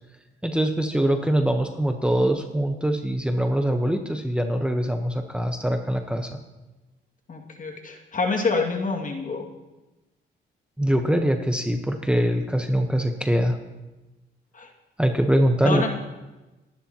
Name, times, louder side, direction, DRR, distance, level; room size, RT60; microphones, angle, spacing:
voice 1, 0.4-6.4 10.8-13.6 15.0-15.8, equal, 5° right, 5 dB, 1.1 m, -23 dB
voice 2, 7.3-9.5 14.5-14.7 15.6-15.9, left 3 dB, 40° left, 2 dB, 2.3 m, -27 dB
27.5 x 11.5 x 3.0 m, 1.1 s
cardioid pair, 90°, 20 cm